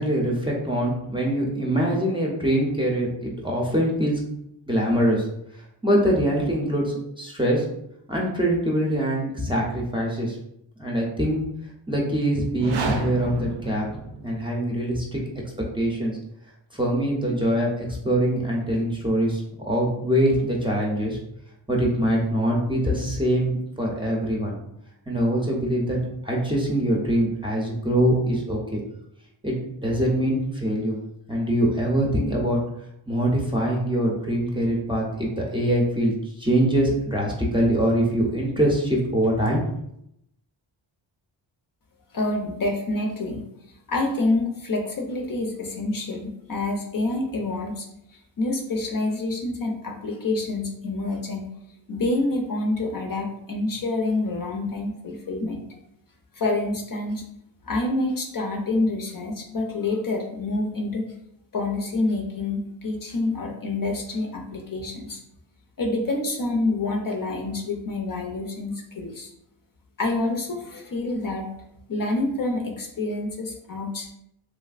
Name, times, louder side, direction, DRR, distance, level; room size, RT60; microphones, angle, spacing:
voice 1, 0.0-4.2 4.7-5.3 5.5-7.6 8.1-10.4 10.8-11.4 11.9-13.9 14.2-15.2 15.7-16.2 16.7-21.2 21.7-24.6 25.1-26.0 26.2-28.8 29.4-31.0 31.3-32.6 33.1-39.7, right 1 dB, 10° right, -3 dB, 0.5 m, -23 dB
sound 1, 12.4-14.6, right 3 dB, 60° right, 0.5 m, -30 dB
voice 2, 42.1-43.5 43.9-47.9 48.4-51.5 51.9-55.7 56.3-57.2 57.6-61.0 61.5-65.2 65.8-69.3 70.0-71.6 71.9-74.1, left 2 dB, 45° left, 1 dB, 0.5 m, -27 dB
3.1 x 2.5 x 2.4 m, 0.77 s
wide cardioid pair, 95°, 47 cm